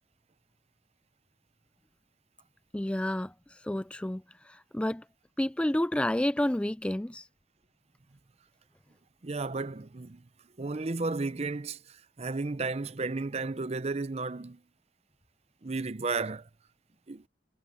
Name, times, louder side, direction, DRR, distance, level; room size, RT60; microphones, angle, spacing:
voice 1, 2.7-5.0 5.4-7.3, left 1 dB, 5° left, 0.3 m, -30 dB
voice 2, 9.2-10.2 10.6-11.8 12.2-14.6 15.6-16.4 17.1-17.2, right 3 dB, 35° right, 0.6 m, -33 dB
head